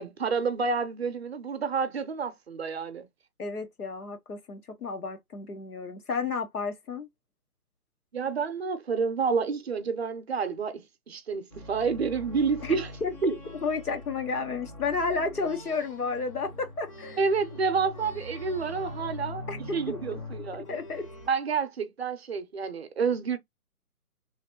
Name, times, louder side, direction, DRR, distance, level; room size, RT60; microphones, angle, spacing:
voice 1, 0.0-3.1 8.1-10.8 11.1-12.9 13.2-13.3 17.2-19.4 19.7-20.8 21.3-23.4, right 5 dB, 45° right, 0.6 m, -29 dB
voice 2, 3.4-7.1 12.6-13.1 13.6-17.2 19.5-19.6 19.9-20.0 20.7-21.1, left 4 dB, 80° left, 1.1 m, -32 dB
sound 1, 11.5-21.3, left 1 dB, 25° left, 0.7 m, -42 dB
3.1 x 2.7 x 2.8 m
figure-of-eight pair, 145°, 44 cm